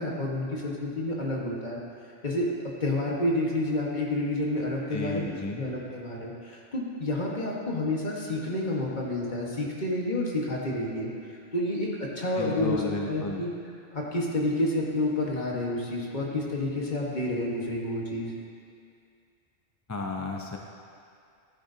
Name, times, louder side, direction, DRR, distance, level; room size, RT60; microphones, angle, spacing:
voice 1, 0.0-1.8 2.2-13.5 13.9-18.3, left 1 dB, 40° left, -3 dB, 1.5 m, -29 dB
voice 2, 4.9-5.6 12.3-13.5 19.9-20.6, left 2 dB, 20° left, 0 dB, 0.5 m, -33 dB
14.0 x 10.0 x 2.8 m, 2.4 s
omnidirectional pair, 1.2 m